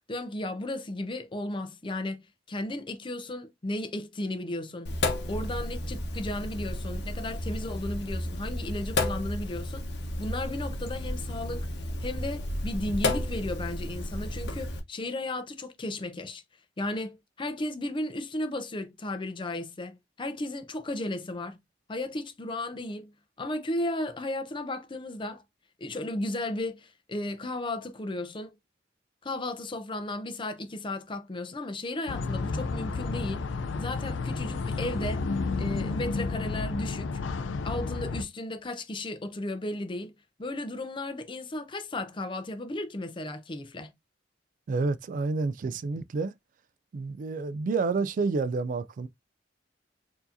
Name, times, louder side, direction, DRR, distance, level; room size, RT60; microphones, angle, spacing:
voice 1, 0.1-4.9 5.3-9.9 10.2-11.7 12.0-16.4 16.8-21.6 21.9-23.1 23.4-25.4 25.8-28.6 29.2-33.5 33.8-35.2 35.6-37.2 37.6-40.1 40.4-43.9, left 1 dB, 25° left, 0.6 m, -34 dB
Sink (filling or washing), 4.9-14.8, left 1 dB, 65° left, 0.9 m, -32 dB
sound 1, 32.1-38.2, left 4 dB, 85° left, 0.4 m, -31 dB
voice 2, 44.7-46.3 46.9-49.1, right 4 dB, 45° right, 0.3 m, -29 dB
4.5 x 2.7 x 2.6 m
head